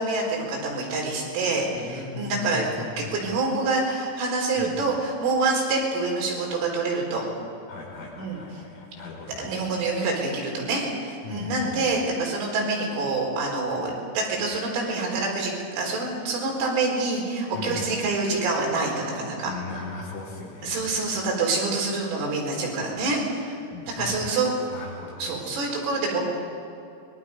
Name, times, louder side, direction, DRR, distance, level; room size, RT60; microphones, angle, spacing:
voice 1, 0.0-2.7 3.0-7.3 8.2-8.4 9.4-19.5 20.6-23.5 23.9-24.5 25.2-26.2, right 3 dB, 80° right, -2 dB, 7.0 m, -26 dB
voice 2, 1.6-3.2 4.6-4.7 7.7-9.7 11.2-11.9 17.5-17.8 19.4-20.9 23.7-24.2 24.7-25.8, left 4 dB, 80° left, -3 dB, 8.0 m, -38 dB
26.5 x 22.0 x 5.3 m, 2.6 s
omnidirectional pair, 5.9 m